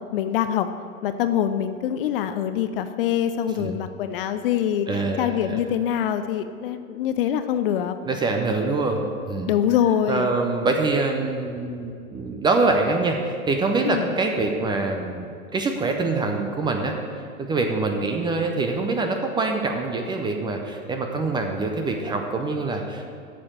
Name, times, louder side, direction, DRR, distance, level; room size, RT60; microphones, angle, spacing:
voice 1, 0.1-0.7 1.0-8.0 9.5-10.3 13.8-14.1, left 10 dB, 40° left, 10 dB, 0.5 m, -24 dB
voice 2, 4.9-5.6 8.1-9.5 10.1-17.0 17.4-23.1, right 3 dB, 10° right, 3 dB, 0.5 m, -25 dB
8.6 x 6.8 x 7.4 m, 2.4 s
figure-of-eight pair, 105°, 43 cm